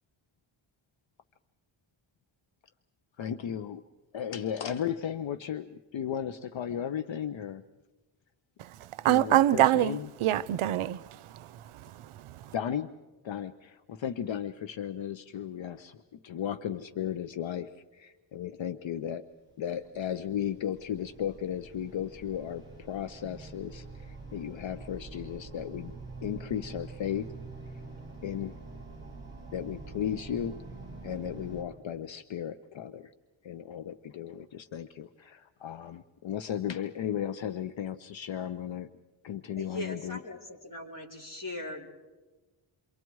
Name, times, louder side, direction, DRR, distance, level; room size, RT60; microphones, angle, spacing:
voice 1, 3.2-3.8 4.1-7.6 9.1-10.1 12.5-12.9 13.2-19.2 19.6-25.9 26.2-27.3 28.2-28.5 29.5-30.6 31.0-33.1 33.4-38.9 39.2-40.2, left 9 dB, 65° left, 0.8 m, -35 dB
voice 2, 9.0-12.5, right 14 dB, 80° right, 0.6 m, -26 dB
sound 1, 19.5-31.6, right 3 dB, 20° right, 5.6 m, -46 dB
voice 3, 39.6-41.9, left 1 dB, 40° left, 4.0 m, -40 dB
28.5 x 24.0 x 4.7 m
wide cardioid pair, 140°, 49 cm